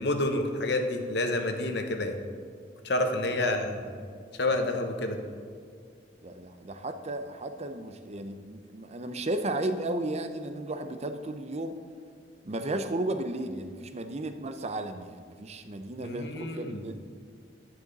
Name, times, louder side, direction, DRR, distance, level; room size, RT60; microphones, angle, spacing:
voice 1, 0.0-2.2 2.8-3.7 4.4-5.2 16.0-16.8, left 2 dB, 65° left, 5 dB, 1.1 m, -29 dB
voice 2, 3.3-3.8 6.2-11.7 12.4-17.0, right 1 dB, 35° right, 8 dB, 0.7 m, -34 dB
10.5 x 10.0 x 4.1 m, 2.1 s
head